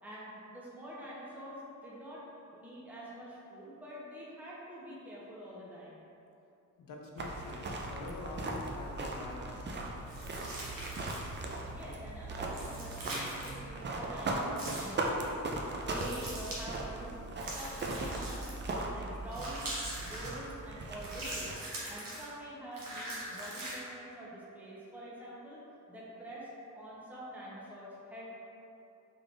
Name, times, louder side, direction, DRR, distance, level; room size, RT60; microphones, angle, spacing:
voice 1, 0.0-2.2 2.5-6.0 11.6-17.2 17.4-18.6 18.9-19.7 20.0-21.6 21.8-25.6 25.9-28.2, right 1 dB, 5° right, -7 dB, 0.8 m, -46 dB
voice 2, 6.8-9.7, left 2 dB, 90° left, 0 dB, 0.5 m, -45 dB
sound 1, 7.2-21.6, right 2 dB, 35° right, 0.4 m, -38 dB
sound 2, 10.1-11.4 12.5-13.6 14.5-15.0 15.9-16.6 17.4-18.7 19.3-20.3 21.0-22.3 22.7-23.8, right 1 dB, 85° right, 0.9 m, -42 dB
3.6 x 3.5 x 2.4 m, 2.7 s
wide cardioid pair, 95°, 33 cm